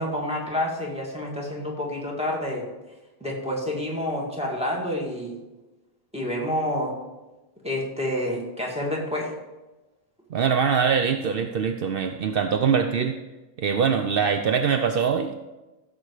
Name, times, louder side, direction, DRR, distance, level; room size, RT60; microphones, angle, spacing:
voice 1, 0.0-2.6 3.2-5.4 6.1-6.9 7.6-9.3, left 1 dB, 5° right, -2 dB, 2.4 m, -28 dB
voice 2, 10.3-13.2 13.6-15.4, right 6 dB, 65° right, 7 dB, 0.8 m, -23 dB
15.0 x 6.6 x 4.9 m, 1.1 s
omnidirectional pair, 1.0 m